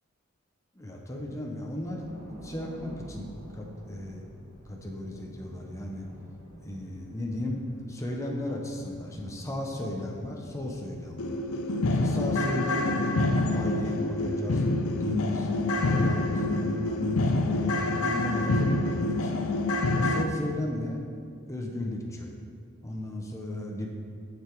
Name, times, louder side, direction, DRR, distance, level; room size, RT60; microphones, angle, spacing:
voice 1, 0.7-2.1 2.4-4.2 4.6-6.1 6.6-7.6 7.9-11.4 11.9-13.1 13.5-14.6 15.0-19.3 19.9-21.0 21.5-22.3 22.8-23.9, left 1 dB, 15° left, -1 dB, 0.9 m, -35 dB
sound 1, 1.8-16.1, right 1 dB, 60° right, 1.4 m, -49 dB
sound 2, 10.2-10.4 10.8-10.9 11.2-20.2, left 2 dB, 80° left, 0.6 m, -27 dB
8.0 x 6.9 x 4.7 m, 2.3 s
head